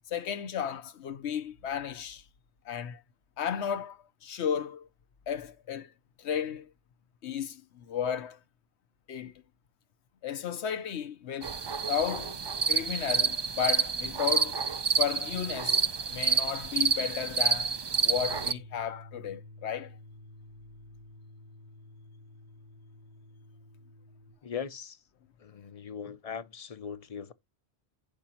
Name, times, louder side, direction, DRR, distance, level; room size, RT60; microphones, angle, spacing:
voice 1, 0.1-2.2 2.7-3.0 3.4-4.9 5.3-5.9 6.2-6.7 7.2-8.4 9.1-9.3 10.2-11.6 11.9-12.4 12.7-14.6 15.0-17.7 18.0-19.9, left 8 dB, 85° left, 1.1 m, -34 dB
sound 1, 11.4-18.5, right 5 dB, 40° right, 0.4 m, -29 dB
sound 2, 18.1-24.3, left 2 dB, 80° right, 2.2 m, -51 dB
voice 2, 24.4-25.0 25.4-27.3, left 7 dB, 40° left, 0.6 m, -39 dB
11.0 x 5.0 x 2.9 m
omnidirectional pair, 1.1 m